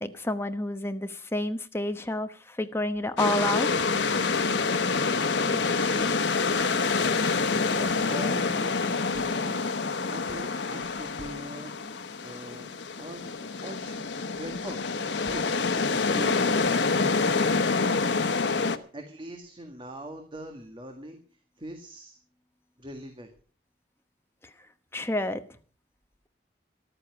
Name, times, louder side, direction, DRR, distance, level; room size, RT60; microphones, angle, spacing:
voice 1, 0.0-3.8 24.9-25.4, left 1 dB, 15° left, 8 dB, 1.0 m, -29 dB
sound 1, 3.2-18.8, left 4 dB, 85° left, 1.0 m, -27 dB
voice 2, 5.4-7.2 7.7-9.7 10.1-11.7 12.2-13.3 13.6-14.0 14.3-14.9 15.2-16.4 18.7-22.2 22.8-23.3, right 1 dB, 30° right, 4 dB, 1.8 m, -42 dB
14.0 x 12.0 x 5.8 m, 0.41 s
head